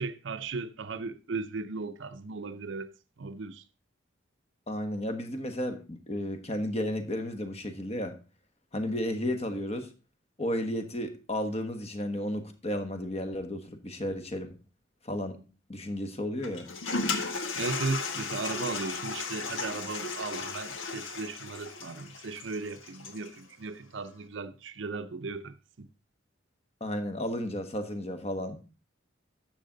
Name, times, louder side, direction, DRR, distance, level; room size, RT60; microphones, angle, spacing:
voice 1, 0.0-2.9 3.2-3.6 17.6-25.9, right 4 dB, 65° right, 0.6 m, -36 dB
voice 2, 4.7-8.2 8.7-9.9 10.4-14.5 15.0-15.4 15.7-16.7 26.8-28.6, left 1 dB, 30° left, 1.3 m, -33 dB
Toilet flush, 16.4-23.4, left 4 dB, 80° left, 1.5 m, -35 dB
12.0 x 7.5 x 3.8 m
head